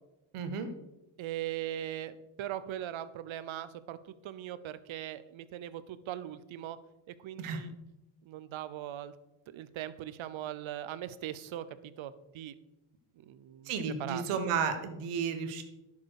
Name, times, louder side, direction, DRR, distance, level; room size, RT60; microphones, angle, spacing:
voice 1, 0.3-0.7 7.4-7.6 13.6-15.6, right 6 dB, 85° right, 8 dB, 1.5 m, -33 dB
voice 2, 1.2-6.8 7.1-7.7 8.2-9.1 9.5-12.5 13.2-13.7 14.0-14.4, right 12 dB, 65° right, 15 dB, 0.9 m, -40 dB
11.0 x 7.3 x 4.8 m, 0.94 s
cardioid pair, 95°, 50 cm